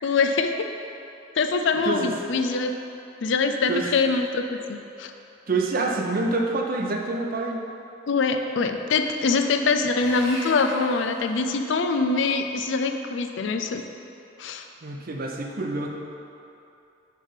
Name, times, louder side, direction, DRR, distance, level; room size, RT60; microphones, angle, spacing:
voice 1, 0.0-0.5 1.4-2.7 3.2-5.1 8.1-13.8 14.4-14.7, left 4 dB, 65° left, 6 dB, 0.4 m, -24 dB
voice 2, 5.5-7.6 14.8-15.9, right 3 dB, 45° right, 1 dB, 0.6 m, -26 dB
Sawing, 10.0-11.9, equal, 20° left, 0.9 m, -40 dB
6.6 x 3.3 x 5.6 m, 2.8 s
head